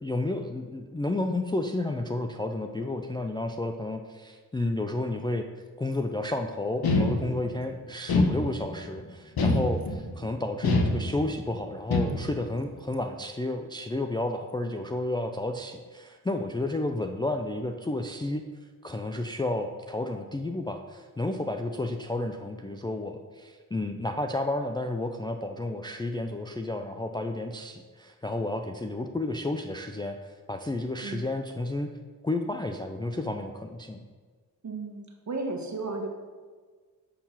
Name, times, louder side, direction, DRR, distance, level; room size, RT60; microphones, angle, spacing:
voice 1, 0.0-5.5 5.8-18.4 18.8-31.9 32.2-34.0, left 2 dB, 10° left, 4 dB, 0.4 m, -31 dB
sound 1, 6.8-7.6 8.1-8.9 9.4-10.2 10.6-11.4 11.9-12.5, left 2 dB, 60° left, 1.1 m, -25 dB
voice 2, 34.6-36.1, right 3 dB, 45° right, 3 dB, 1.4 m, -34 dB
7.4 x 4.5 x 5.7 m, 1.5 s
cardioid pair, 65°, 41 cm